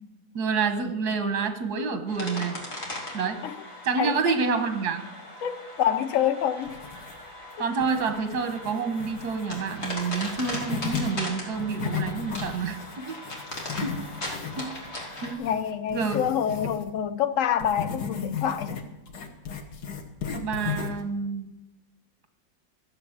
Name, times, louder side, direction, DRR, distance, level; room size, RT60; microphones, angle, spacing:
voice 1, 0.3-2.6 3.1-3.4 3.8-5.0 7.6-13.2 13.8-14.0 14.6-14.7 15.2-15.4 15.9-16.2 20.3-21.5, right 5 dB, 85° right, 1.7 m, -28 dB
sound 1, 2.1-15.3, left 1 dB, 45° left, 3.0 m, -39 dB
voice 2, 4.0-4.4 5.4-6.8 15.4-18.8, left 9 dB, 60° left, 1.0 m, -27 dB
sound 2, 6.6-7.4 7.8-11.1 11.5-16.9 17.6-21.1, left 7 dB, 85° left, 1.8 m, -36 dB
13.5 x 7.4 x 7.3 m
omnidirectional pair, 1.7 m